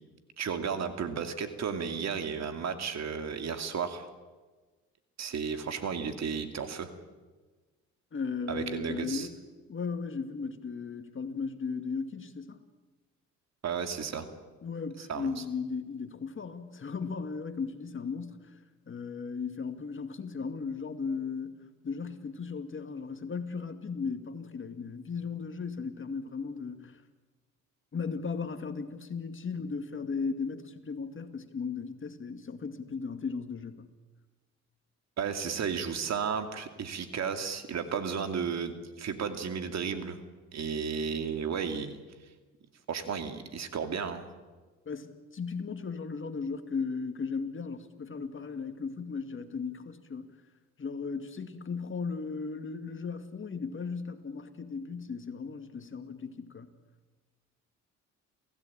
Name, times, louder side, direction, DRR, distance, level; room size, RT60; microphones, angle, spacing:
voice 1, 0.4-4.1 5.2-6.9 8.5-9.3 13.6-14.3 15.1-15.3 35.2-40.2 40.5-42.0 42.9-44.2, right 6 dB, 60° right, 8 dB, 2.6 m, -33 dB
voice 2, 8.1-9.4 9.7-12.6 14.6-18.6 18.9-21.6 21.8-27.0 27.9-33.9 44.9-50.4 50.8-56.7, left 5 dB, 40° left, 8 dB, 2.3 m, -36 dB
28.0 x 16.5 x 8.8 m, 1.3 s
supercardioid pair, 75°, 31 cm